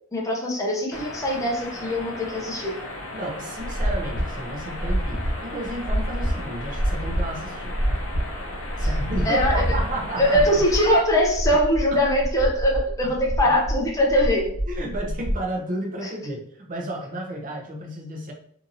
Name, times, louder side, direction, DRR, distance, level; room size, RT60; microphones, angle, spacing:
voice 1, 0.1-2.7 8.8-8.9 9.2-9.7 10.2-14.5 16.0-16.1, equal, 15° left, -1 dB, 0.4 m, -22 dB
sound 1, 0.9-11.0, left 1 dB, 65° left, 0.5 m, -36 dB
voice 2, 3.1-7.8 8.8-10.5 13.0-13.1 13.4-13.5 14.7-18.3, right 1 dB, 40° right, 0 dB, 0.6 m, -32 dB
sound 2, 3.6-15.4, equal, 50° left, 1.0 m, -27 dB
2.7 x 2.6 x 2.5 m, 0.64 s
head